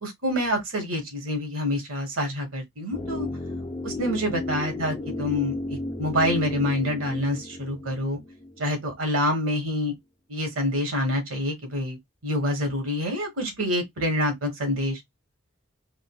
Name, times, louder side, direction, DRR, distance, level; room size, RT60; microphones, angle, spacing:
voice 1, 0.0-3.3 3.8-8.2 8.6-9.9 10.3-12.0 12.2-15.0, left 1 dB, 85° right, 1.3 m, -27 dB
sound 1, 2.9-8.9 9.2-9.3, left 2 dB, 30° left, 0.6 m, -33 dB
3.7 x 2.2 x 2.2 m
head